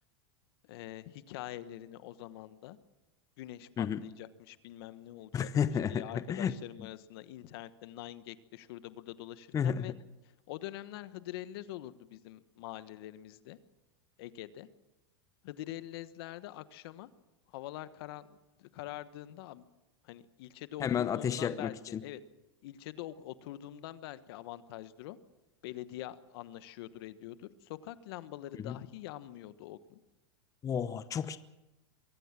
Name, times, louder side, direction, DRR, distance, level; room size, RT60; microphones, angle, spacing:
voice 1, 0.6-2.8 3.4-9.9 10.5-13.6 14.2-14.7 15.4-17.1 17.5-18.3 18.6-19.7 20.0-22.2 22.6-25.2 25.6-30.0, left 14 dB, 65° left, 14 dB, 1.2 m, -45 dB
voice 2, 5.3-6.5 9.5-9.9 20.8-22.0 28.5-28.8 30.6-31.4, left 8 dB, 25° left, 14 dB, 0.9 m, -32 dB
23.5 x 16.0 x 7.5 m, 0.99 s
supercardioid pair, 125°, 14 cm